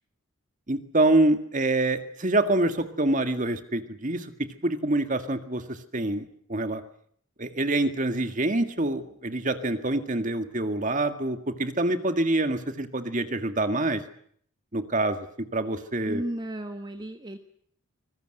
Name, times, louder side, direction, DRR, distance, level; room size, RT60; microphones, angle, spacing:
voice 1, 0.7-4.3 4.6-6.8 7.4-14.0 14.7-15.2 15.5-16.2, right 2 dB, 40° right, 9 dB, 1.9 m, -26 dB
voice 2, 16.0-17.4, right 1 dB, 20° right, 7 dB, 1.5 m, -34 dB
25.0 x 21.5 x 7.9 m, 0.63 s
head